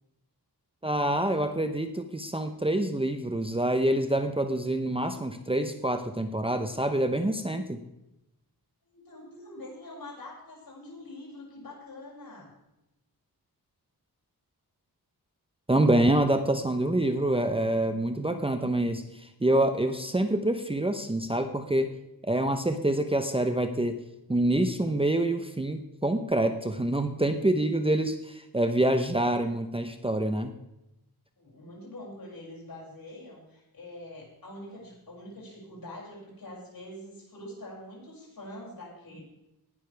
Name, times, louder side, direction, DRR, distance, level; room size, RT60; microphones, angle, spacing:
voice 1, 0.8-7.8 15.7-21.9 22.2-24.0 24.3-30.5, right 1 dB, 15° right, 7 dB, 0.8 m, -26 dB
voice 2, 8.9-12.6 31.4-39.3, left 1 dB, 60° left, -3 dB, 6.5 m, -45 dB
18.5 x 12.0 x 3.4 m, 0.90 s
wide cardioid pair, 130°, 39 cm